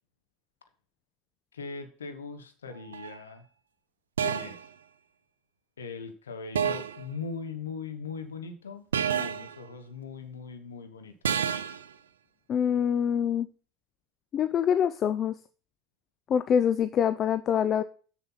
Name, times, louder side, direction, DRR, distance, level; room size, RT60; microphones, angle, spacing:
voice 1, 1.5-3.5 4.2-4.7 5.8-11.6, left 5 dB, 85° left, 8 dB, 1.1 m, -40 dB
sound 1, 2.9-3.2 4.2-4.7 6.6-7.1 8.9-9.6 11.2-11.8, right 8 dB, 85° right, 0.5 m, -29 dB
voice 2, 12.5-13.5 14.3-15.4 16.3-17.8, left 8 dB, 45° left, 12 dB, 0.5 m, -25 dB
7.1 x 6.5 x 5.6 m, 0.40 s
hypercardioid pair, 70°, 0 cm